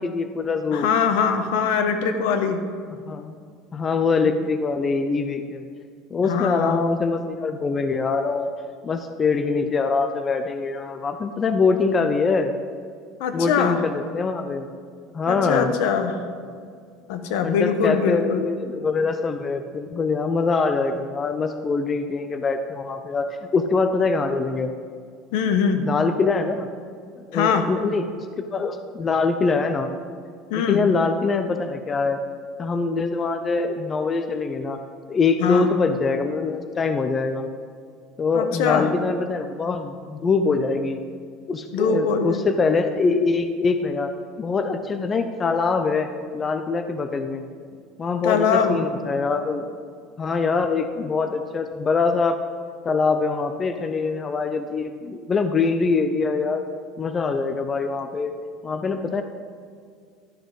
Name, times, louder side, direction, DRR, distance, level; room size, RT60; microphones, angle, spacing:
voice 1, 0.0-0.9 3.0-3.4 3.7-5.6 6.1-8.5 8.8-12.5 13.3-14.7 15.1-15.8 17.4-24.7 25.8-26.7 27.2-29.9 30.7-32.2 32.6-34.8 35.1-37.5 38.2-41.0 41.5-46.1 46.3-47.4 48.0-49.7 50.2-52.4 52.8-56.6 57.0-58.3 58.6-59.2, left 4 dB, 20° left, 7 dB, 0.4 m, -23 dB
voice 2, 0.7-2.6 6.2-6.9 13.2-13.8 15.3-16.2 17.1-18.4 25.3-25.8 27.3-27.6 30.5-30.9 35.4-35.7 38.3-38.9 41.7-42.4 48.2-48.8, left 6 dB, 75° left, 7 dB, 1.1 m, -22 dB
12.0 x 6.2 x 5.2 m, 2.2 s
cardioid pair, 165°, 0 cm